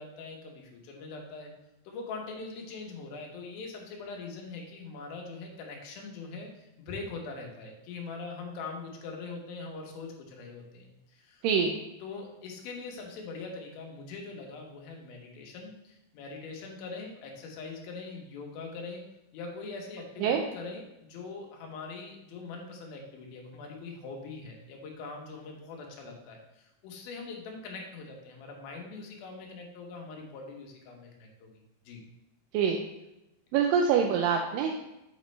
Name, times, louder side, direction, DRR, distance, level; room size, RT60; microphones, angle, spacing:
voice 1, 0.0-1.5 1.8-11.4 12.0-19.0 19.3-31.5 31.8-32.0, left 4 dB, 85° left, 1 dB, 2.9 m, -42 dB
voice 2, 33.5-34.8, right 7 dB, 80° right, 2 dB, 2.1 m, -25 dB
7.3 x 5.2 x 3.2 m, 0.91 s
omnidirectional pair, 4.1 m